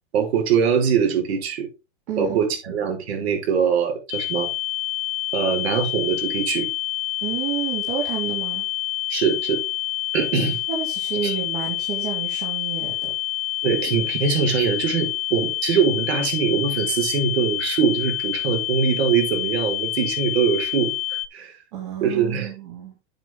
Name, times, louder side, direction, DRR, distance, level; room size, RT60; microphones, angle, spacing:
voice 1, 0.1-1.7 2.2-4.5 5.3-6.7 9.1-9.6 10.1-10.6 11.2-11.3 13.6-20.9 21.3-21.5 22.0-22.5, right 7 dB, 65° right, 4.8 m, -22 dB
voice 2, 2.1-2.8 7.2-8.7 10.7-13.1 21.7-23.0, right 9 dB, 45° right, 3.1 m, -30 dB
sound 1, 4.1-21.3, left 17 dB, 50° left, 1.3 m, -27 dB
9.0 x 8.7 x 3.7 m
supercardioid pair, 170°, 34 cm